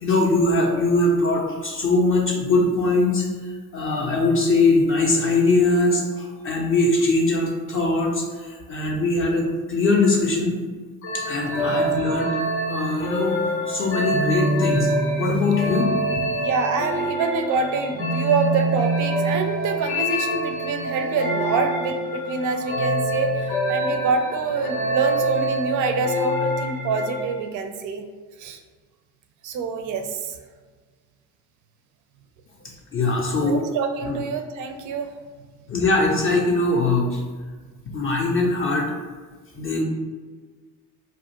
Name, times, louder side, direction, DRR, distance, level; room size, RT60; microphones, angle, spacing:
voice 1, 0.0-10.6 11.1-12.4 12.7-13.4 13.7-15.9 32.9-33.6 34.0-34.2 35.7-37.2 37.9-38.9 39.5-39.8, left 2 dB, 30° left, -2 dB, 0.5 m, -21 dB
sound 1, 11.0-27.4, right 1 dB, 80° left, 0.6 m, -25 dB
voice 2, 16.4-28.0 28.4-28.6 29.4-30.4 33.4-35.1, right 5 dB, 45° right, 6 dB, 0.4 m, -26 dB
2.4 x 2.1 x 2.9 m, 1.4 s
hypercardioid pair, 55°, 45 cm